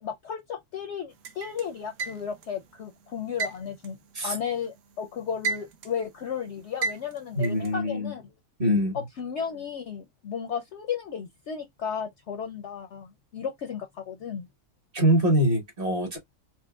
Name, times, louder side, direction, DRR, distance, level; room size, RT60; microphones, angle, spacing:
voice 1, 0.0-4.0 4.2-8.3 8.9-14.5, left 7 dB, 65° left, 0.7 m, -34 dB
sound 1, 1.2-2.6 3.4-4.8 5.1-6.1 6.8-7.7, right 4 dB, 65° right, 0.9 m, -32 dB
voice 2, 7.4-8.1 8.6-9.0 14.9-16.2, equal, 40° right, 1.3 m, -23 dB
4.5 x 2.1 x 2.2 m
omnidirectional pair, 1.6 m